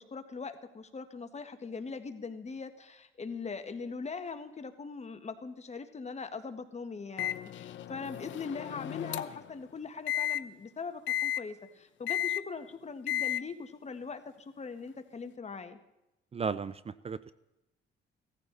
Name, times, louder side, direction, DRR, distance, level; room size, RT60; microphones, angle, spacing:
voice 1, 0.0-15.8, left 4 dB, 35° left, 9 dB, 1.6 m, -41 dB
Microwave oven, 7.2-9.5 10.1-10.4 11.1-11.4 12.1-12.4 13.1-13.4, left 12 dB, 70° left, 0.7 m, -33 dB
voice 2, 16.3-17.3, right 5 dB, 30° right, 16 dB, 0.5 m, -35 dB
17.0 x 14.5 x 4.1 m, 0.93 s
cardioid pair, 90°, 20 cm